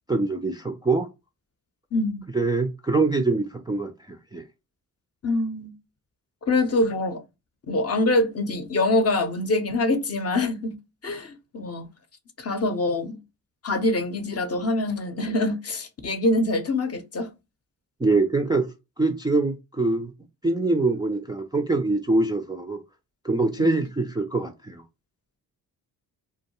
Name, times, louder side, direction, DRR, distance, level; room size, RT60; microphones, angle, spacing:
voice 1, 0.1-1.1 2.3-4.4 18.0-18.7 19.0-20.1 20.4-22.8 23.2-24.8, right 3 dB, 10° right, 0.3 m, -24 dB
voice 2, 1.9-2.2 5.2-5.7 6.5-7.2 7.7-10.7 11.0-11.9 12.4-13.2 13.6-17.3 23.6-23.8, left 2 dB, 35° left, 0.7 m, -24 dB
2.2 x 2.2 x 2.9 m
supercardioid pair, 45°, 40 cm